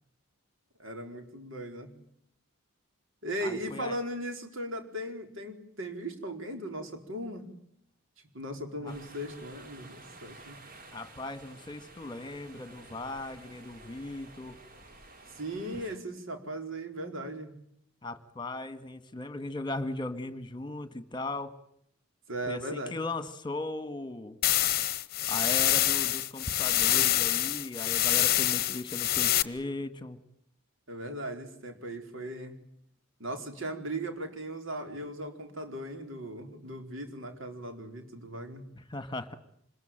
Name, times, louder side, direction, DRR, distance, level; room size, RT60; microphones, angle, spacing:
voice 1, 0.8-1.9 3.2-7.5 8.3-10.6 15.4-17.5 22.3-23.0 30.9-32.6 33.2-38.6, right 1 dB, 60° right, 5 dB, 4.6 m, -38 dB
voice 2, 3.4-4.0 8.8-8.9 10.9-14.6 15.7-15.8 18.0-21.5 22.5-24.4 25.3-30.2 38.8-39.3, left 2 dB, 20° left, 11 dB, 1.8 m, -38 dB
sound 1, 8.9-16.0, right 2 dB, 40° right, 3.7 m, -52 dB
sound 2, 24.4-29.4, left 13 dB, 45° left, 1.0 m, -26 dB
26.5 x 21.5 x 9.1 m, 0.69 s
head